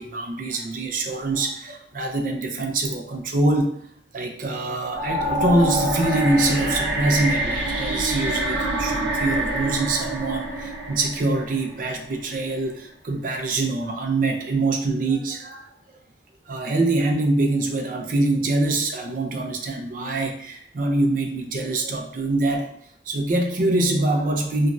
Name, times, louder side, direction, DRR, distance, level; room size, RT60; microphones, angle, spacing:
voice 1, 0.0-3.8 4.1-15.6 16.5-22.7 23.1-24.7, right 2 dB, 50° right, 4 dB, 0.4 m, -24 dB
sound 1, 4.9-12.0, right 1 dB, 80° right, 0.7 m, -26 dB
3.0 x 2.3 x 2.5 m, 0.68 s
head